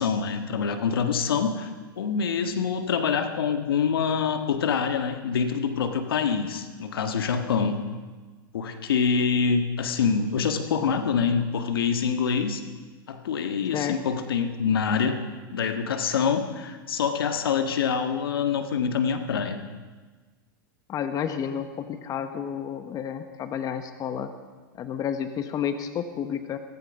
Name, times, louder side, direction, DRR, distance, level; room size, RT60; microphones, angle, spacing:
voice 1, 0.0-1.7 2.0-7.8 8.5-12.6 13.1-15.2 15.5-19.6, left 6 dB, 80° left, 7 dB, 1.5 m, -25 dB
voice 2, 20.9-24.3 24.8-26.6, left 8 dB, 30° left, 9 dB, 1.1 m, -31 dB
16.0 x 15.5 x 5.4 m, 1.4 s
hypercardioid pair, 115°, 12 cm